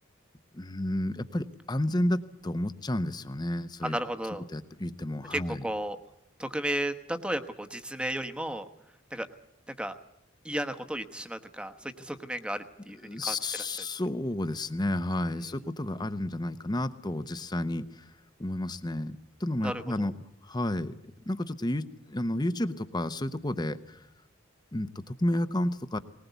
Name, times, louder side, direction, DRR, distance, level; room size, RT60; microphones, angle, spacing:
voice 1, 0.5-4.0 4.5-5.6 13.0-17.8 18.4-20.1 20.5-21.0 21.3-21.8 22.1-24.0 24.7-26.0, left 1 dB, 20° left, 12 dB, 0.8 m, -31 dB
voice 2, 3.8-4.4 5.3-6.0 6.4-8.7 9.1-9.3 9.7-9.9 10.4-13.4 15.3-15.6 19.6-20.1, right 1 dB, 5° right, 8 dB, 1.1 m, -34 dB
20.0 x 20.0 x 8.1 m, 0.80 s
head